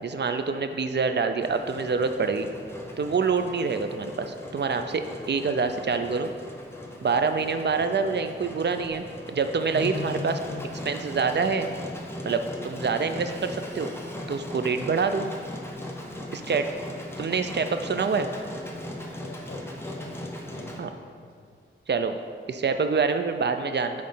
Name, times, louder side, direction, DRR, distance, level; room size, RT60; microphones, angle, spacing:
voice 1, 0.0-2.5 3.0-6.3 7.0-10.4 10.9-11.7 12.2-13.9 14.3-15.2 16.3-16.7 17.2-18.3 20.8-20.9 21.9-22.2 22.5-24.0, right 5 dB, 55° right, 8 dB, 0.5 m, -26 dB
Engine, 1.4-20.8, left 1 dB, 10° left, 0.8 m, -39 dB
voice 2, 9.7-10.7 16.9-17.0 19.2-19.6 20.0-21.3, left 4 dB, 80° left, 4 dB, 0.6 m, -39 dB
8.5 x 3.2 x 5.6 m, 2.1 s
wide cardioid pair, 85°, 21 cm